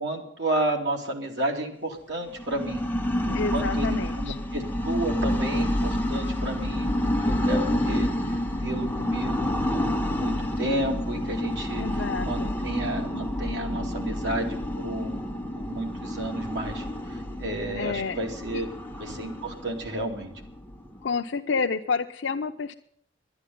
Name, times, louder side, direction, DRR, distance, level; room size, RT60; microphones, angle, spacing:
voice 1, 0.0-2.8 3.2-8.3 8.6-15.2 15.5-18.7 19.0-20.3, right 1 dB, 75° right, 2 dB, 2.5 m, -32 dB
sound 1, 2.3-21.0, left 1 dB, 10° left, 1.0 m, -29 dB
voice 2, 3.3-4.4 11.8-12.5 17.7-18.2 18.5-18.6 21.0-22.7, left 5 dB, 85° left, 4 dB, 0.5 m, -29 dB
11.5 x 9.7 x 9.3 m, 0.69 s
head